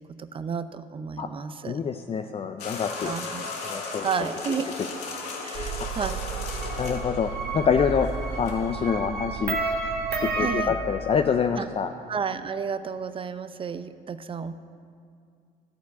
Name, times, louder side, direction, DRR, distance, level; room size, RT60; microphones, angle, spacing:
voice 1, 0.0-1.8 3.0-3.5 4.0-4.7 5.4-6.2 10.4-10.8 11.6-11.7 12.1-14.5, right 6 dB, 30° right, 12 dB, 0.6 m, -32 dB
voice 2, 1.6-3.1 3.6-4.0 6.8-8.1 8.4-9.6 10.4-11.9, left 6 dB, 30° left, 6 dB, 0.5 m, -26 dB
sound 1, 2.6-8.9, left 3 dB, 60° left, 2.4 m, -36 dB
sound 2, 5.5-10.7, right 4 dB, 55° right, 2.0 m, -31 dB
13.5 x 4.5 x 8.3 m, 2.3 s
supercardioid pair, 75°, 19 cm